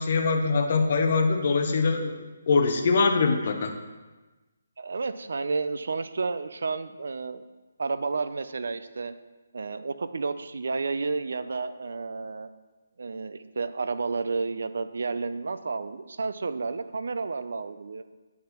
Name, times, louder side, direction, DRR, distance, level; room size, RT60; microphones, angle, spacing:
voice 1, 0.0-3.7, left 4 dB, 35° left, 6 dB, 0.6 m, -23 dB
voice 2, 4.8-7.4 7.8-9.1 9.5-12.5 13.0-18.0, right 4 dB, 60° right, 12 dB, 0.4 m, -31 dB
9.3 x 5.5 x 3.0 m, 1.2 s
hypercardioid pair, 175°, 0 cm